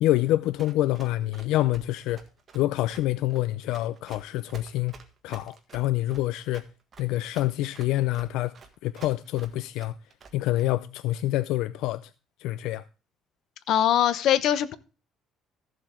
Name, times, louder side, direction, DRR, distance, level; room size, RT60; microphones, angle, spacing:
voice 1, 0.0-2.2 2.5-4.9 5.2-6.6 7.0-8.5 8.8-10.0 10.3-12.1 12.4-12.8, left 15 dB, 85° left, 0.4 m, -26 dB
Run, 0.6-10.6, right 5 dB, 35° right, 1.7 m, -50 dB
voice 2, 13.7-14.8, left 10 dB, 60° left, 0.9 m, -22 dB
14.5 x 7.6 x 3.7 m
cardioid pair, 150°, 0 cm